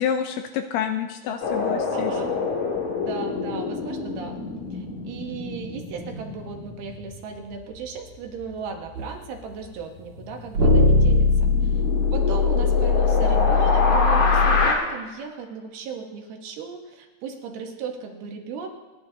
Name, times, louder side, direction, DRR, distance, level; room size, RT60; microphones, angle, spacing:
voice 1, 0.0-2.1, left 8 dB, 80° left, 7 dB, 2.4 m, -28 dB
sound 1, 1.4-8.5 8.9-9.0 9.4-14.7, left 3 dB, 50° left, 3.0 m, -27 dB
voice 2, 1.9-2.3 3.0-4.4 4.7-11.8 12.1-18.7, right 5 dB, 70° right, 3 dB, 2.9 m, -36 dB
sound 2, 8.9-9.1 10.6-14.7, left 4 dB, 45° right, 2.8 m, -20 dB
29.5 x 10.5 x 2.8 m, 1.3 s
omnidirectional pair, 5.0 m